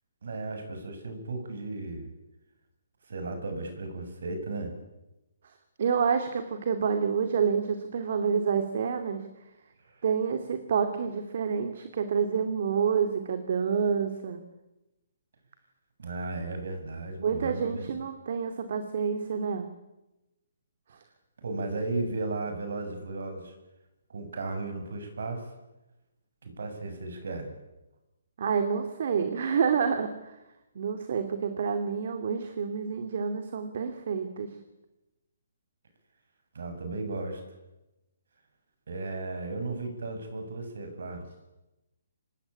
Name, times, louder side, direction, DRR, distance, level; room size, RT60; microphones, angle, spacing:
voice 1, 0.2-2.1 3.1-4.7 9.8-10.1 16.0-17.8 21.4-23.5 24.1-25.5 26.4-27.5 36.5-37.4 38.9-41.3, right 2 dB, 75° right, 7 dB, 7.5 m, -35 dB
voice 2, 5.8-9.2 10.0-14.4 17.2-19.7 28.4-30.3 30.7-34.5, right 6 dB, 55° right, 7 dB, 2.7 m, -28 dB
25.5 x 20.0 x 10.0 m, 0.99 s
hypercardioid pair, 165°, 0 cm